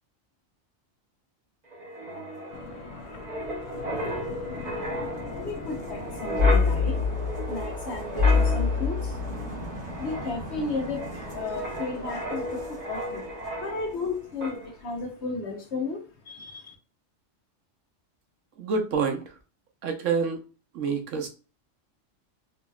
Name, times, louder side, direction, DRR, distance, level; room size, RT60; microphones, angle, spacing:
Wind, 1.7-14.1 14.4-14.6, left 3 dB, 35° right, 1.3 m, -29 dB
sound 1, 2.5-15.1, left 4 dB, 85° left, 1.0 m, -43 dB
voice 1, 5.4-7.0 7.5-9.2 10.0-13.3 13.6-16.7, left 3 dB, 65° left, 1.1 m, -34 dB
voice 2, 18.6-19.4 19.8-20.4 20.7-21.3, right 5 dB, 80° right, 1.1 m, -27 dB
3.9 x 2.9 x 2.3 m
omnidirectional pair, 1.3 m